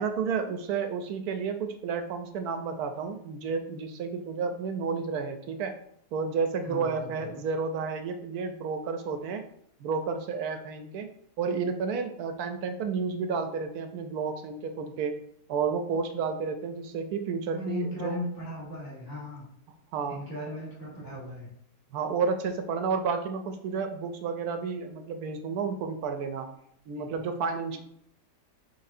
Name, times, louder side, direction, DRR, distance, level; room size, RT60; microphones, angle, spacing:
voice 1, 0.0-5.7 6.1-9.4 9.8-11.1 11.4-15.2 15.5-18.2 19.9-20.2 21.9-26.5 26.9-27.8, right 5 dB, 75° right, 7 dB, 1.0 m, -31 dB
voice 2, 6.6-7.4 17.5-19.5 20.1-21.5 26.9-27.1, left 1 dB, 15° left, -7 dB, 1.6 m, -37 dB
5.8 x 3.3 x 2.7 m, 0.71 s
omnidirectional pair, 1.7 m